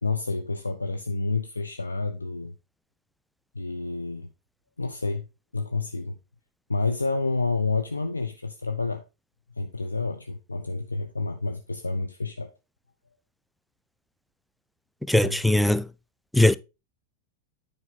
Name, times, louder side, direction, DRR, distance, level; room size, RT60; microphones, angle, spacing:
voice 1, 0.0-2.6 3.5-4.3 4.8-5.3 5.5-6.2 6.7-9.0 9.6-12.5 15.2-15.4, left 3 dB, 80° left, 0.6 m, -29 dB
voice 2, 15.1-15.8 16.3-16.6, left 1 dB, ahead, 0.4 m, -19 dB
9.8 x 5.4 x 3.7 m
figure-of-eight pair, 90°, 0 cm